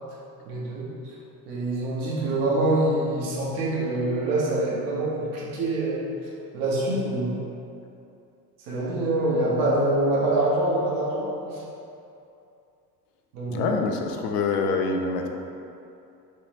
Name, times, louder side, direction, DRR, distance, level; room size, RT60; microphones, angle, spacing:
voice 1, 0.5-0.9 1.5-6.0 6.5-7.4 8.7-11.4 13.3-13.7, right 2 dB, 70° right, -5 dB, 1.0 m, -25 dB
voice 2, 13.5-15.3, left 4 dB, 75° left, 3 dB, 0.5 m, -25 dB
3.2 x 2.8 x 3.2 m, 2.6 s
hypercardioid pair, 65°, 48 cm